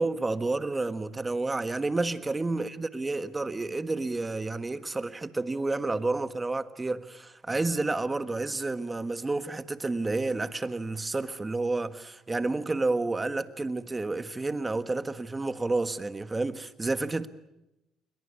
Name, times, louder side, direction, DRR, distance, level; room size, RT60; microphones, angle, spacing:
voice 1, 0.0-17.3, right 3 dB, 20° right, 1.5 m, -30 dB
29.5 x 22.0 x 8.4 m
cardioid pair, 105°, 0 cm